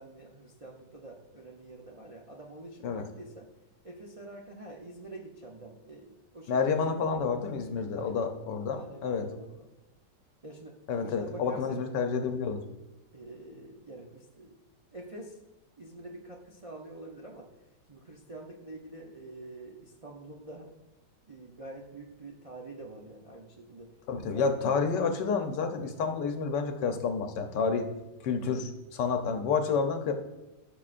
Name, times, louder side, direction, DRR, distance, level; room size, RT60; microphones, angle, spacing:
voice 1, 0.0-3.5 3.8-7.0 7.9-9.7 10.4-11.8 13.1-14.6 14.9-15.4 15.8-17.5 17.9-20.7 21.2-23.9 24.3-24.7, right 2 dB, 45° right, -2 dB, 0.4 m, -46 dB
voice 2, 6.5-9.2 10.9-12.6 24.1-27.9 28.2-30.1, left 5 dB, 80° left, 5 dB, 1.5 m, -29 dB
14.0 x 6.1 x 2.5 m, 1.1 s
omnidirectional pair, 1.9 m